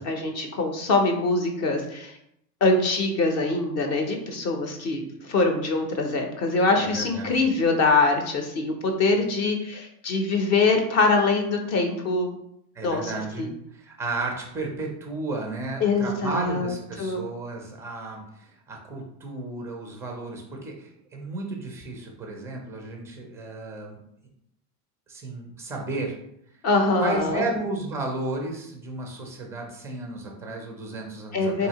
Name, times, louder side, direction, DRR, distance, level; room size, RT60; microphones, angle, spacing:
voice 1, 0.0-2.1 2.6-12.3 12.8-13.1 13.4-13.5 15.8-17.2 26.6-27.4 31.3-31.7, left 3 dB, 35° left, 4 dB, 0.6 m, -23 dB
voice 2, 6.8-7.4 12.7-24.0 25.1-26.1 27.0-31.7, right 2 dB, 5° right, 1 dB, 0.4 m, -33 dB
4.1 x 2.7 x 2.8 m, 0.75 s
supercardioid pair, 125°, 48 cm